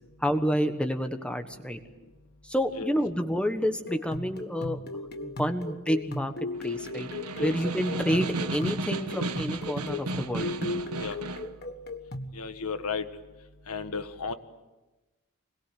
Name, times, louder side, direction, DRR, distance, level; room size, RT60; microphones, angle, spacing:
voice 1, 0.2-1.8 2.4-4.8 5.2-6.3 6.6-7.1 7.4-10.7, equal, 5° left, 7 dB, 1.4 m, -29 dB
sound 1, 3.9-12.4, left 2 dB, 45° left, 1.5 m, -37 dB
Snare drum, 6.5-11.5, right 3 dB, 80° right, 1.3 m, -34 dB
voice 2, 12.3-13.1 13.7-14.3, left 5 dB, 80° left, 9 dB, 1.7 m, -33 dB
25.5 x 21.0 x 9.4 m, 1.1 s
head